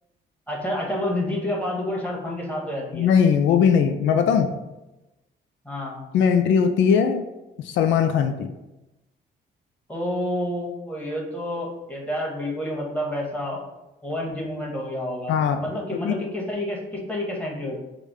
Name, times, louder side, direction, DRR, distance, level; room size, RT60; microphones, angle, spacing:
voice 1, 0.5-3.1 5.6-6.0 9.9-13.6 14.0-15.3 15.6-17.8, left 1 dB, 5° left, -3 dB, 1.4 m, -29 dB
voice 2, 2.9-4.5 6.1-7.3 7.6-8.5 15.3-15.6 15.9-16.1, left 7 dB, 75° left, 8 dB, 0.4 m, -20 dB
4.9 x 2.2 x 4.8 m, 0.99 s
cardioid pair, 90°, 20 cm